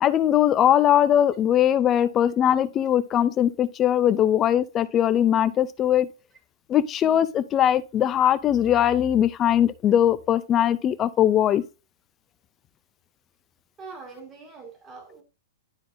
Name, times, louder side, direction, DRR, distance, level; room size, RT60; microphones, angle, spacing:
voice 1, 0.0-6.1 6.7-11.6, left 10 dB, 20° left, 0.3 m, -20 dB
voice 2, 13.8-15.2, right 4 dB, 15° right, 1.6 m, -43 dB
11.0 x 3.9 x 2.6 m
hypercardioid pair, 170°, 0 cm